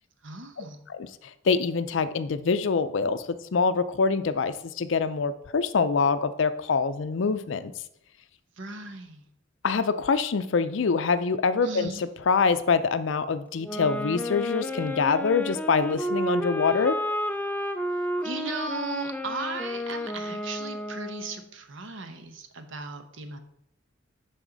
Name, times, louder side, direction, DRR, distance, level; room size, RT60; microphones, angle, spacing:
voice 1, 0.2-0.8 8.6-9.3 11.6-12.0 18.2-23.4, right 3 dB, 65° right, 7 dB, 0.9 m, -36 dB
voice 2, 1.5-7.7 9.6-11.9 12.3-17.0, left 5 dB, 65° left, 12 dB, 0.5 m, -25 dB
sound 1, 13.6-21.5, equal, 10° left, 0.4 m, -31 dB
11.0 x 4.2 x 3.9 m, 0.76 s
head